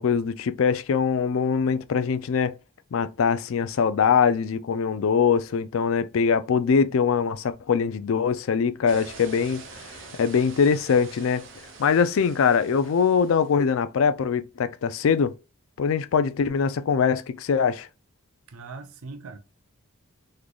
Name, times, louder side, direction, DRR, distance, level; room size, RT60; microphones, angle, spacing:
voice 1, 0.0-2.5 2.9-9.6 10.2-11.4 11.8-15.3 15.8-17.9, left 6 dB, 70° left, 0.4 m, -22 dB
sound 1, 8.9-13.7, right 4 dB, 60° right, 0.9 m, -45 dB
voice 2, 18.5-19.4, right 3 dB, 85° right, 0.6 m, -40 dB
3.7 x 3.2 x 2.3 m
head